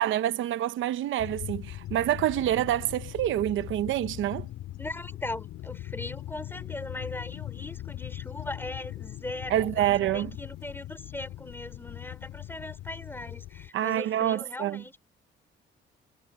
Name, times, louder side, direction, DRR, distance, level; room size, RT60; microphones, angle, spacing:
voice 1, 0.0-4.5 9.5-10.3 13.7-14.8, right 12 dB, 80° right, 0.9 m, -27 dB
sound 1, 1.2-13.7, left 14 dB, 90° left, 3.9 m, -40 dB
voice 2, 4.8-14.9, left 1 dB, 10° left, 3.3 m, -39 dB
cardioid pair, 90°, 20 cm